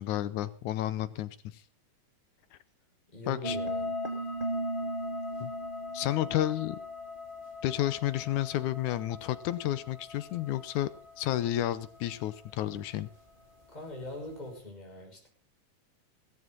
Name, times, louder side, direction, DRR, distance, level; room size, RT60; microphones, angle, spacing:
voice 1, 0.0-1.6 2.5-2.6 3.3-3.6 5.4-5.5 5.9-6.8 7.6-10.9 11.2-13.1, left 13 dB, 75° left, 15 dB, 2.1 m, -31 dB
voice 2, 3.1-3.9 13.7-15.3, left 2 dB, 10° left, -1 dB, 6.2 m, -42 dB
sound 1, 3.4-12.7, left 1 dB, 15° right, 2.2 m, -38 dB
17.0 x 14.0 x 3.9 m, 0.38 s
omnidirectional pair, 3.8 m